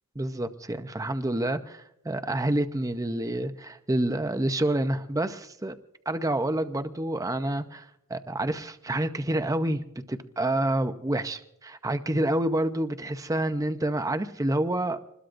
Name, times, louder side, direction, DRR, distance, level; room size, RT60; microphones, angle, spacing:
voice 1, 0.2-5.7 6.1-15.0, right 1 dB, 15° right, 9 dB, 0.6 m, -28 dB
26.0 x 20.5 x 2.5 m, 0.82 s
head